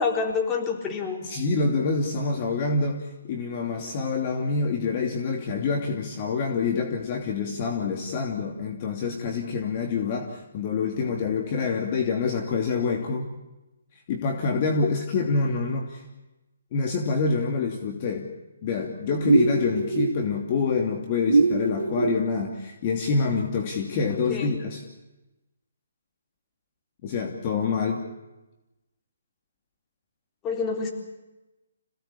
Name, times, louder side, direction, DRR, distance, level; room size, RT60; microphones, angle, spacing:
voice 1, 0.0-1.2 24.1-24.5 30.4-30.9, left 5 dB, 15° left, 1 dB, 4.0 m, -27 dB
voice 2, 1.2-13.3 14.1-16.0 16.7-18.3 18.6-24.8 27.0-28.0, left 4 dB, 35° left, 2 dB, 2.8 m, -26 dB
sound 1, 19.2-20.2 21.3-22.2, right 3 dB, 75° right, 2.6 m, -22 dB
27.0 x 18.0 x 8.6 m, 1.0 s
hypercardioid pair, 145°, 0 cm